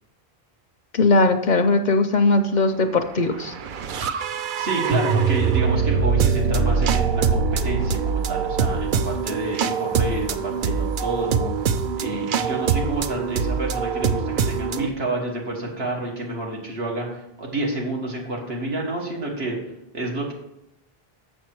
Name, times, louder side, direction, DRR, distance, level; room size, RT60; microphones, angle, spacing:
voice 1, 0.9-3.5, left 3 dB, 55° left, 8 dB, 0.6 m, -19 dB
sound 1, 3.1-14.9, right 6 dB, 60° right, 0.7 m, -23 dB
voice 2, 4.6-19.6 19.9-20.3, right 2 dB, 80° right, -1 dB, 1.9 m, -29 dB
7.3 x 6.6 x 4.6 m, 0.82 s
omnidirectional pair, 1.0 m